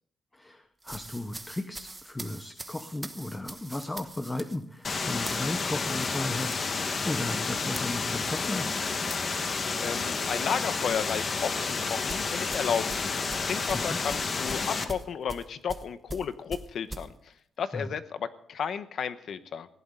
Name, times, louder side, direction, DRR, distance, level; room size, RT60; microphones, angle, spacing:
voice 1, 0.3-8.8 13.7-14.0 17.7-17.9, left 2 dB, 15° left, 9 dB, 0.9 m, -35 dB
sound 1, 0.8-10.4 10.7-11.0 12.1-17.1, right 2 dB, 15° right, 1.1 m, -44 dB
sound 2, 4.8-14.8, left 4 dB, 40° left, 1.5 m, -30 dB
voice 2, 9.8-17.1 17.6-19.7, left 7 dB, 60° left, 12 dB, 1.1 m, -33 dB
19.5 x 15.5 x 3.9 m, 0.69 s
cardioid pair, 125°, 0 cm